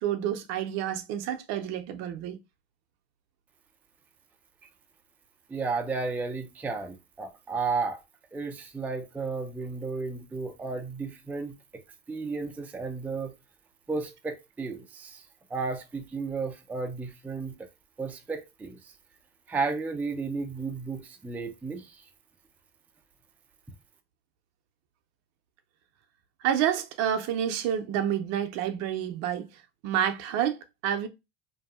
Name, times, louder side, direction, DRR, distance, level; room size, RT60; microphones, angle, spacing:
voice 1, 0.0-2.4 26.4-29.5 29.8-31.1, right 10 dB, 55° right, 0.6 m, -29 dB
voice 2, 5.5-8.0 8.3-11.8 12.1-13.3 13.9-15.2 15.5-17.7 18.0-18.9 19.5-22.0, right 4 dB, 5° right, 0.4 m, -33 dB
2.6 x 2.3 x 2.3 m
hypercardioid pair, 90°, 32 cm